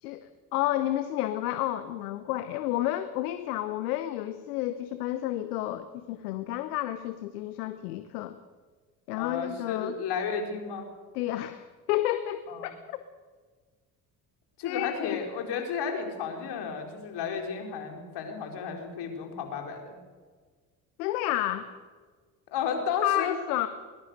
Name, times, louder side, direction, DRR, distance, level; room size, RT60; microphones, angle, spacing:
voice 1, 0.0-8.4 9.1-9.9 11.1-13.0 14.6-15.2 21.0-21.7 23.0-23.7, left 14 dB, 80° left, 12 dB, 1.1 m, -31 dB
voice 2, 9.1-10.9 12.5-12.7 14.6-20.0 22.5-23.4, left 6 dB, 60° left, 3 dB, 4.6 m, -33 dB
21.5 x 21.0 x 6.7 m, 1.5 s
hypercardioid pair, 55°, 45 cm